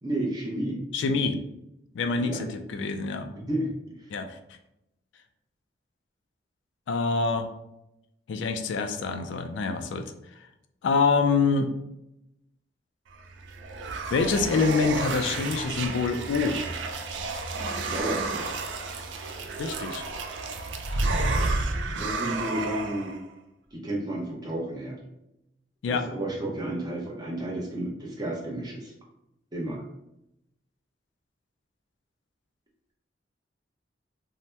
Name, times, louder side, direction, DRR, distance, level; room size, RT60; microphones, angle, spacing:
voice 1, 0.0-0.8 2.1-2.4 3.5-3.7 17.9-18.4 22.0-23.2 23.7-25.0 25.9-28.9 29.5-29.8, right 1 dB, 25° right, -2 dB, 0.6 m, -31 dB
voice 2, 0.9-1.4 1.9-3.3 4.1-4.4 6.9-7.5 8.3-10.1 10.8-11.7 14.1-16.6 19.6-20.0 25.8-26.1, left 4 dB, 85° left, 7 dB, 0.3 m, -26 dB
sound 1, 13.2-23.2, right 3 dB, 90° right, 0.4 m, -31 dB
2.7 x 2.1 x 3.2 m, 0.85 s
head